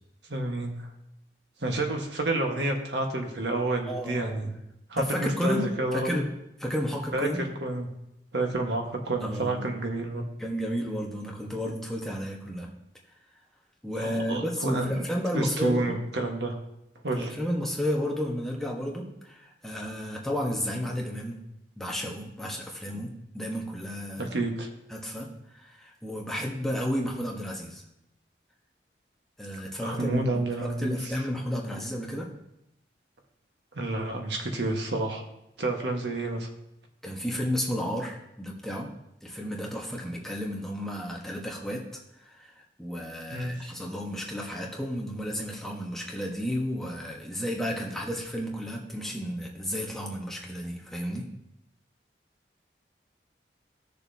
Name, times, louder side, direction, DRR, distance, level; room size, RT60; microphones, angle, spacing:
voice 1, 0.3-0.9 1.6-4.5 4.9-6.2 7.1-7.3 7.6-7.9 8.3-10.2 14.0-15.0 15.3-16.6 17.0-17.3 22.9-23.0 24.2-24.7 29.8-31.1 33.7-35.2 35.6-36.5 43.3-43.7, right 2 dB, 80° right, 2 dB, 1.5 m, -29 dB
voice 2, 3.8-4.5 5.0-6.3 6.6-7.4 9.2-9.7 10.4-12.7 13.8-16.0 17.1-21.4 21.8-23.1 23.3-24.4 24.9-27.8 29.4-32.3 37.0-38.9 39.2-41.8 42.2-42.5 42.8-51.2, equal, ahead, -2 dB, 1.3 m, -32 dB
17.0 x 6.8 x 2.8 m, 0.84 s
head